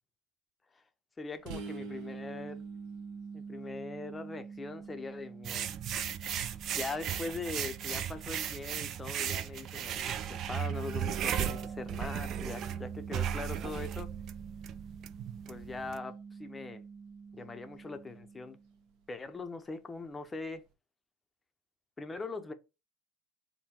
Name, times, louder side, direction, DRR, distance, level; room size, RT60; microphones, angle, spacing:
voice 1, 1.2-2.6 3.3-5.7 6.4-14.1 15.5-16.8 17.3-18.6 19.1-20.6 22.0-22.5, left 3 dB, 20° left, 0.6 m, -41 dB
sound 1, 1.5-19.0, right 5 dB, 65° right, 0.9 m, -46 dB
sound 2, 5.4-16.0, right 9 dB, 45° right, 0.4 m, -36 dB
3.6 x 2.1 x 4.3 m
hypercardioid pair, 90°, 0 cm